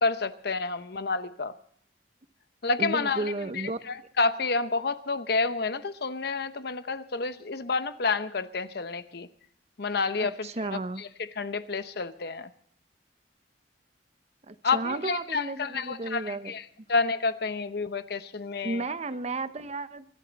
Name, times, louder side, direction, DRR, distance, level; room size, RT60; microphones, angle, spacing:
voice 1, 0.0-1.6 2.6-9.3 9.8-10.7 11.0-11.1 11.4-12.5 14.6-18.8, left 4 dB, 65° left, 0.9 m, -29 dB
voice 2, 2.8-3.8 10.2-11.0 14.5-16.5 18.6-20.1, right 2 dB, 40° right, 0.8 m, -33 dB
24.5 x 12.5 x 4.0 m
head